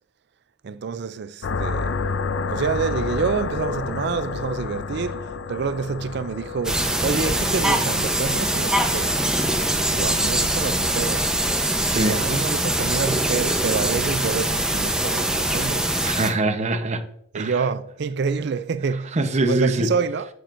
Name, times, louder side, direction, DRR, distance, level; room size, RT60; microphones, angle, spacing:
voice 1, 0.6-2.0 2.5-9.2 9.9-11.4 11.9-15.9 17.3-19.1 19.5-20.3, right 5 dB, 65° right, 0.4 m, -27 dB
sound 1, 1.4-11.0, left 4 dB, 75° left, 0.5 m, -31 dB
sound 2, 6.6-16.3, right 1 dB, 5° right, 0.8 m, -23 dB
voice 2, 11.9-12.2 16.0-17.0 17.3-17.6 19.1-19.9, right 2 dB, 40° right, 0.8 m, -23 dB
11.0 x 7.6 x 2.6 m
head